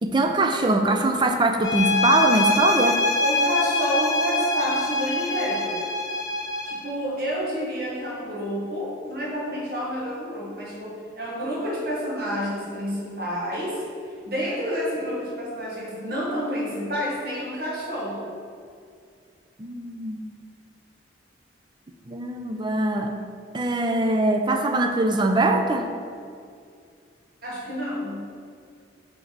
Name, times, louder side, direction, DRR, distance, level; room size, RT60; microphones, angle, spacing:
voice 1, 0.0-3.0 19.6-20.3 22.1-23.1 23.5-25.9, right 2 dB, 25° right, 5 dB, 0.4 m, -22 dB
sound 1, 1.6-6.9, left 2 dB, 20° left, 0.6 m, -24 dB
voice 2, 3.2-5.8 6.6-13.8 14.2-18.3 27.4-28.2, equal, 50° right, -5 dB, 1.7 m, -29 dB
8.1 x 3.8 x 4.6 m, 2.3 s
head